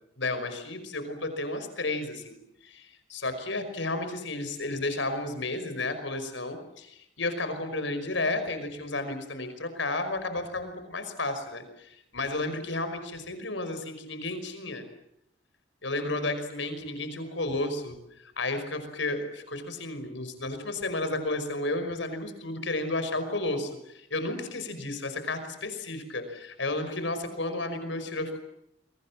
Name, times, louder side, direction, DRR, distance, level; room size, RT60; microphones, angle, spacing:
voice 1, 0.2-14.8 15.8-28.4, left 2 dB, 75° left, 9 dB, 5.4 m, -32 dB
30.0 x 24.0 x 7.5 m, 0.79 s
head